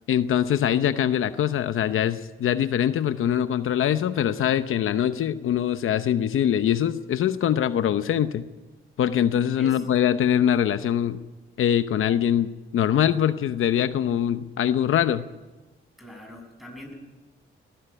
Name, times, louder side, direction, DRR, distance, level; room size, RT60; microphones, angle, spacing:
voice 1, 0.1-8.4 9.0-11.2 11.6-15.2, left 10 dB, 80° left, 11 dB, 0.8 m, -23 dB
voice 2, 16.0-16.9, left 1 dB, ahead, 3 dB, 7.2 m, -42 dB
19.5 x 14.5 x 9.1 m, 1.2 s
cardioid pair, 85°, 21 cm